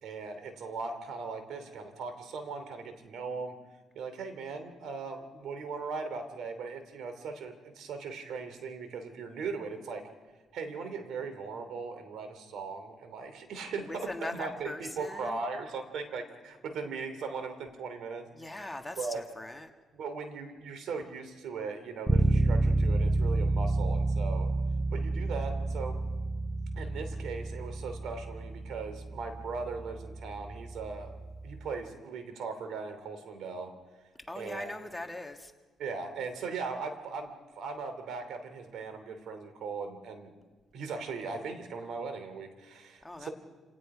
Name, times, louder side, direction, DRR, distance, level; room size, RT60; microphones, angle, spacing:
voice 1, 0.0-3.6 3.9-10.0 10.5-18.3 19.0-19.2 19.9-24.5 24.9-26.0 26.7-31.1 31.4-33.7 34.4-34.7 35.8-40.3 40.7-43.3, right 4 dB, 75° right, 8 dB, 3.0 m, -39 dB
voice 2, 13.8-15.4 18.3-19.7 34.3-35.5 43.0-43.3, left 1 dB, 10° left, 5 dB, 1.6 m, -40 dB
Bass guitar, 22.1-31.8, right 2 dB, 15° right, 0.5 m, -30 dB
28.5 x 18.5 x 5.0 m, 1.3 s
cardioid pair, 90°, 0 cm